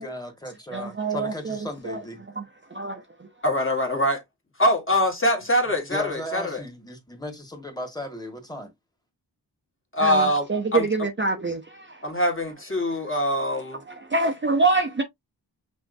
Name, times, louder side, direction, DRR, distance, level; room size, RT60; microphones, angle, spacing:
voice 1, 0.0-2.2 5.9-8.7, left 1 dB, 10° left, 1.6 m, -36 dB
voice 2, 0.7-1.6 1.8-2.0 2.4-2.5 2.7-3.3 10.0-12.0 13.9-15.0, right 3 dB, 25° right, 0.7 m, -25 dB
voice 3, 3.4-4.2 4.6-6.6 9.9-10.5 10.7-10.9 12.0-13.8, left 1 dB, 30° left, 1.7 m, -23 dB
5.9 x 2.9 x 2.6 m
wide cardioid pair, 110°, 42 cm